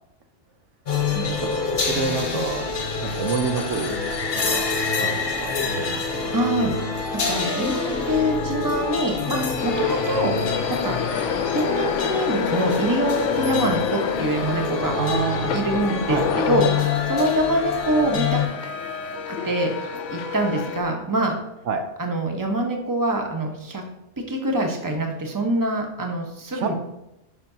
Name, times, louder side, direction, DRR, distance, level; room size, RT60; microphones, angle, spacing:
sound 1, 0.9-18.5, left 4 dB, 50° left, 1.2 m, -27 dB
voice 1, 1.2-4.0 4.3-4.7 5.0-6.0 15.0-16.6 21.7-21.8 26.5-26.7, right 5 dB, 70° right, 6 dB, 1.0 m, -29 dB
voice 2, 6.3-6.7 7.1-10.3 10.7-11.0 11.5-15.0 15.5-16.7 17.1-18.4 19.3-19.7 20.1-21.4 22.0-23.8 24.3-26.7, right 1 dB, 15° right, 2 dB, 0.9 m, -24 dB
sound 2, 7.1-20.8, left 4 dB, 20° left, 2.2 m, -35 dB
sound 3, 9.6-20.8, left 8 dB, 75° left, 0.9 m, -29 dB
10.5 x 5.5 x 2.7 m, 0.91 s
omnidirectional pair, 1.3 m